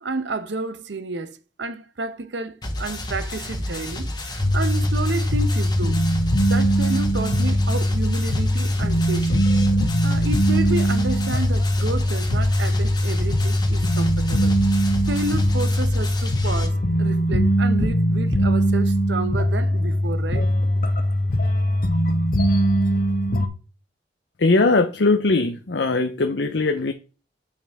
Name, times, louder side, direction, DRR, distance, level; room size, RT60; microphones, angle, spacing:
voice 1, 0.0-6.0 6.4-9.5 10.0-14.6 15.1-20.5, right 3 dB, 85° right, 0.9 m, -30 dB
sound 1, 2.6-16.7, left 1 dB, 25° left, 1.5 m, -31 dB
sound 2, 4.4-23.5, equal, 55° left, 1.2 m, -21 dB
voice 2, 24.4-26.9, left 3 dB, 75° left, 0.7 m, -20 dB
8.7 x 5.4 x 3.6 m
head